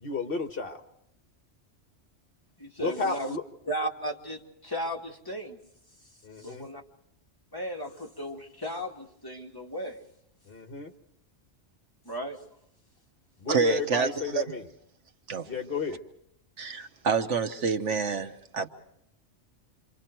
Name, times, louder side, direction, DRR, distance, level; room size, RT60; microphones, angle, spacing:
voice 1, 0.0-0.8 2.8-3.4 6.2-6.7 10.5-10.9 13.4-14.6 15.4-16.0, left 4 dB, 50° left, 6 dB, 1.4 m, -32 dB
voice 2, 2.6-3.4 3.7-5.6 6.4-6.8 7.5-10.0 12.1-12.4, equal, 20° left, 0 dB, 2.0 m, -35 dB
voice 3, 13.5-14.4 15.3-15.5 16.6-18.7, right 5 dB, 75° right, 7 dB, 1.4 m, -28 dB
28.0 x 25.5 x 4.5 m, 0.74 s
omnidirectional pair, 1.2 m